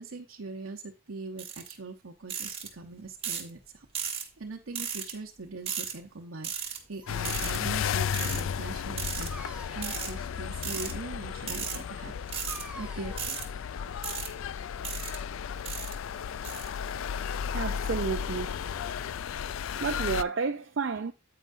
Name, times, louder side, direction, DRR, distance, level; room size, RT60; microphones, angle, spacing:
voice 1, 0.0-12.1 12.5-13.4, right 3 dB, 80° right, 0.9 m, -42 dB
sound 1, 1.4-1.7 2.3-2.7 3.2-3.5 3.9-4.2 4.7-5.1 5.7-5.9 6.4-6.8 7.2-7.6 8.1-8.4 9.0-9.3 9.8-10.1 10.6-10.9 11.4-11.8 12.3-12.6 13.2-13.5 14.0-14.3 14.8-15.2 15.7-15.9 16.4-16.7, right 7 dB, 30° right, 1.3 m, -35 dB
Dog, 6.6-14.5, right 2 dB, 5° right, 0.6 m, -50 dB
sound 2, 7.1-20.2, left 7 dB, 70° left, 0.3 m, -34 dB
voice 2, 16.8-17.1 17.5-18.6 19.8-21.1, right 5 dB, 60° right, 0.5 m, -31 dB
9.2 x 8.6 x 2.6 m
head